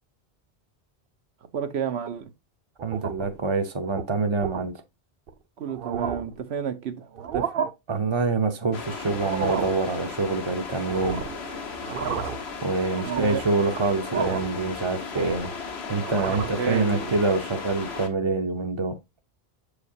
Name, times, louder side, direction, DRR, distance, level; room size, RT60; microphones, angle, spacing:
voice 1, 1.5-2.3 5.6-7.5 13.0-13.4 16.4-17.2, right 7 dB, 85° right, 1.1 m, -31 dB
voice 2, 2.8-4.8 7.9-11.2 12.6-15.5 15.9-19.0, right 3 dB, 35° right, 0.5 m, -26 dB
sound 1, 2.8-3.4 3.8-4.0 4.4-4.6 5.3-5.4 5.7-6.4 7.1-7.7 9.1-9.8 10.8-11.4 11.8-12.5 12.9-13.5 14.1-14.6 14.9-15.6 16.0-16.6, right 7 dB, 65° right, 0.9 m, -31 dB
sound 2, 8.7-18.1, left 4 dB, 80° left, 1.4 m, -36 dB
7.3 x 4.9 x 2.7 m
omnidirectional pair, 1.1 m